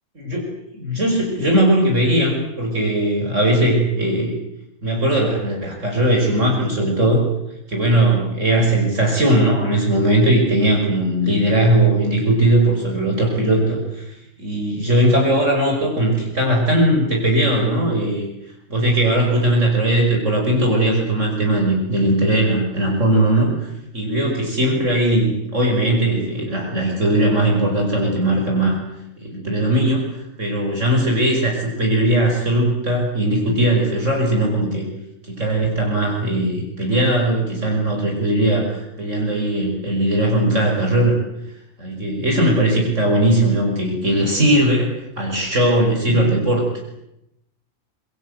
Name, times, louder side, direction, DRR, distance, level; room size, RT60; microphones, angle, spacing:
voice 1, 0.2-0.5 0.7-4.3 4.8-7.2 7.7-14.0 14.4-18.2 18.7-28.8 29.2-34.8 35.3-41.2 41.8-46.8, right 1 dB, 60° right, 0 dB, 5.9 m, -19 dB
27.5 x 22.5 x 8.0 m, 0.83 s
omnidirectional pair, 1.4 m